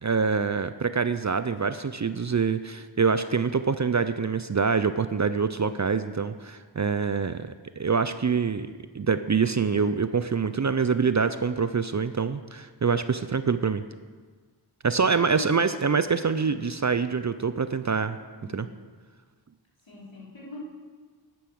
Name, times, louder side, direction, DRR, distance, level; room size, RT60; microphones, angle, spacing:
voice 1, 0.0-8.7 8.9-13.8 14.8-18.2 18.5-18.7, right 5 dB, 40° right, 12 dB, 0.5 m, -25 dB
voice 2, 15.1-15.9 18.3-18.7 19.8-20.6, left 2 dB, 65° left, -6 dB, 4.1 m, -42 dB
10.0 x 9.3 x 6.3 m, 1.5 s
wide cardioid pair, 50°, 48 cm